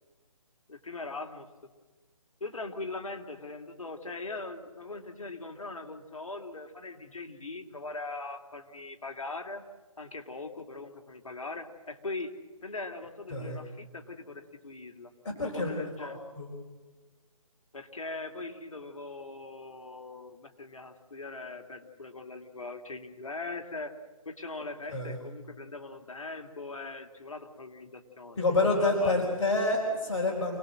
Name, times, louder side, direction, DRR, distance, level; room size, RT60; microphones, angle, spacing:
voice 1, 0.7-1.5 2.4-9.6 10.0-12.3 12.6-15.1 15.4-16.2 17.7-23.9 24.2-28.4 28.8-29.3, left 3 dB, 65° left, 4 dB, 2.7 m, -40 dB
voice 2, 15.2-15.7 16.0-16.5 24.9-25.2 28.4-30.6, left 2 dB, 50° left, -1 dB, 4.6 m, -28 dB
28.0 x 19.5 x 7.7 m, 1.3 s
figure-of-eight pair, 150°, 18 cm